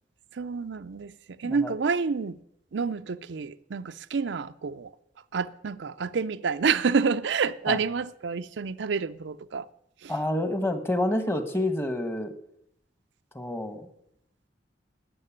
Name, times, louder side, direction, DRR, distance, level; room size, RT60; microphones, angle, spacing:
voice 1, 0.3-2.4 2.7-4.9 5.3-9.7 10.0-10.1, right 5 dB, 70° right, 0.5 m, -28 dB
voice 2, 1.4-1.7 7.7-7.8 10.1-12.3 13.3-13.9, left 1 dB, 15° left, 1.3 m, -28 dB
13.5 x 7.7 x 10.0 m
head